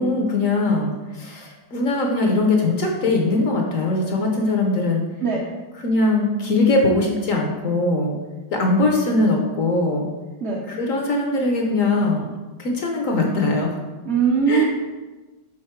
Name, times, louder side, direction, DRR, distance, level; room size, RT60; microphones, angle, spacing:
voice 1, 0.0-5.0 5.8-8.1 8.5-10.1 10.7-12.3 12.6-13.7 14.5-14.6, left 2 dB, 55° left, 1 dB, 1.0 m, -21 dB
voice 2, 14.1-14.6, right 6 dB, 55° right, -4 dB, 0.8 m, -20 dB
6.5 x 3.8 x 4.4 m, 1.2 s
omnidirectional pair, 1.9 m